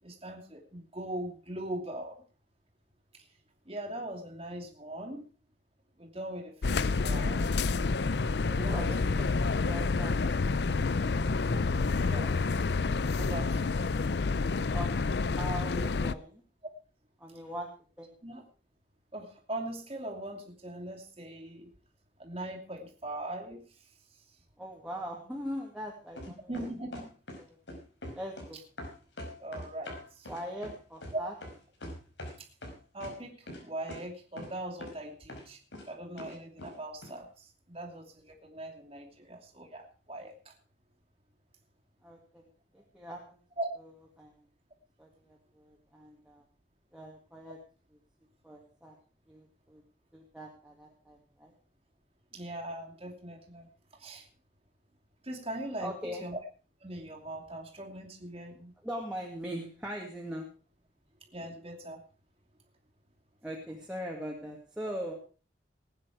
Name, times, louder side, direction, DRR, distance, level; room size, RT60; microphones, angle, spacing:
voice 1, 0.0-2.2 3.6-5.3 6.0-7.6 8.5-8.9 11.9-12.3 13.2-13.9 18.2-18.4 19.1-21.7 22.2-23.8 26.5-27.1 29.4-30.3 31.1-31.2 32.4-32.5 32.9-35.6 35.9-40.5 43.6-43.7 52.3-53.7 53.9-54.3 55.2-55.9 56.2-56.4 56.8-58.7 61.3-62.0, right 1 dB, 30° right, 0 dB, 2.6 m, -40 dB
sound 1, 6.6-16.1, left 4 dB, 65° left, 0.6 m, -28 dB
voice 2, 8.7-9.3 9.5-11.0 14.7-16.4 17.2-17.7 18.0-18.1 24.6-26.5 27.4-27.6 28.1-28.6 30.3-31.3 42.0-42.5 42.7-43.4 44.2-44.5 45.0-46.4 46.9-47.6 48.4-49.0 49.3-49.8 50.1-51.5 55.8-56.2 58.8-60.5 63.4-65.1, equal, 5° right, -3 dB, 2.2 m, -41 dB
sound 2, 26.2-27.4 27.7-28.5 28.8-32.3 32.6-33.1 33.5-33.6 33.9-34.0 34.4-34.5 34.8-35.0 35.3-35.8 36.2-36.7 37.0-37.1, left 1 dB, 90° left, 5.2 m, -42 dB
19.5 x 9.1 x 4.8 m, 0.38 s
head